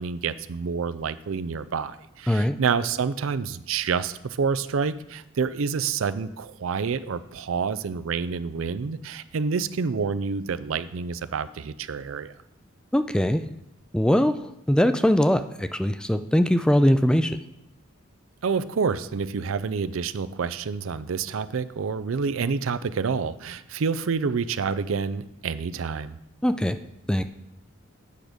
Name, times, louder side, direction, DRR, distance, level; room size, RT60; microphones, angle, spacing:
voice 1, 0.0-12.3 18.4-26.2, right 5 dB, 80° right, 14 dB, 0.5 m, -28 dB
voice 2, 12.9-13.4 13.9-17.4 26.4-26.8 27.1-27.2, equal, 5° left, 10 dB, 0.3 m, -21 dB
8.5 x 6.3 x 5.1 m, 0.83 s
head